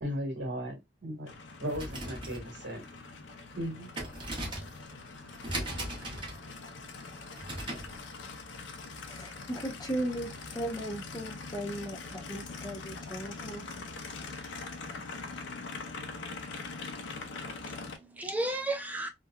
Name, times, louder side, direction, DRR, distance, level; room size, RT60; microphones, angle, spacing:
voice 1, 0.0-1.3 1.6-2.8 3.6-3.9, equal, 70° right, 1.4 m, -36 dB
Aircraft, 1.3-18.0, left 4 dB, 80° left, 0.5 m, -43 dB
sound 1, 1.6-8.0, right 1 dB, 25° right, 0.8 m, -40 dB
voice 2, 9.0-13.7, right 1 dB, 20° left, 0.7 m, -37 dB
voice 3, 17.3-19.1, right 1 dB, 10° right, 0.3 m, -35 dB
2.8 x 2.2 x 2.2 m
head